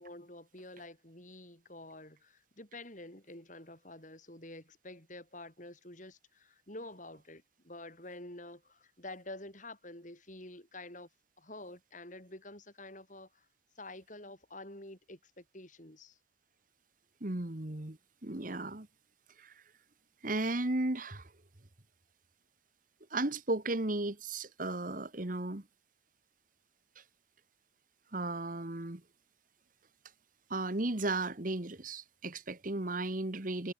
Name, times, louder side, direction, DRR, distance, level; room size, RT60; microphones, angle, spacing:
voice 1, 0.0-11.1 11.4-13.5 13.7-16.2, left 2 dB, 40° left, 6.4 m, -49 dB
voice 2, 17.2-18.0 18.2-18.9 19.4-19.5 20.2-21.3 23.1-25.6 28.1-29.0 30.5-33.7, right 2 dB, 45° right, 1.5 m, -35 dB
head